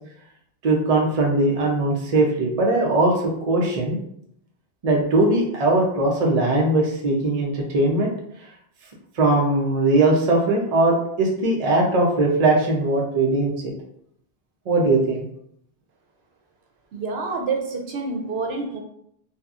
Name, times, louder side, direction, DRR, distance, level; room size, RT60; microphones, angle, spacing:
voice 1, 0.6-3.1 3.4-4.0 4.8-8.1 9.2-13.7 14.7-15.2, right 2 dB, 45° right, -1 dB, 0.6 m, -20 dB
voice 2, 16.9-18.8, right 4 dB, 90° right, 2 dB, 0.8 m, -27 dB
2.8 x 2.3 x 2.4 m, 0.71 s
omnidirectional pair, 1.0 m